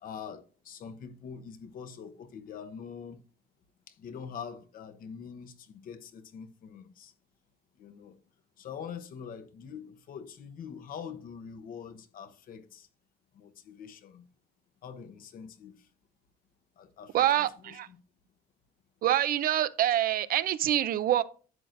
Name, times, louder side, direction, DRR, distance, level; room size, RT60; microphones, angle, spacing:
voice 1, 0.0-3.2 3.9-7.1 7.8-8.2 8.6-12.9 13.3-14.2 14.8-15.9 16.8-18.0, left 7 dB, 55° left, 1.0 m, -44 dB
voice 2, 17.1-17.9 19.0-21.2, right 12 dB, 60° right, 0.6 m, -26 dB
11.0 x 7.8 x 2.6 m
cardioid pair, 110°, 17 cm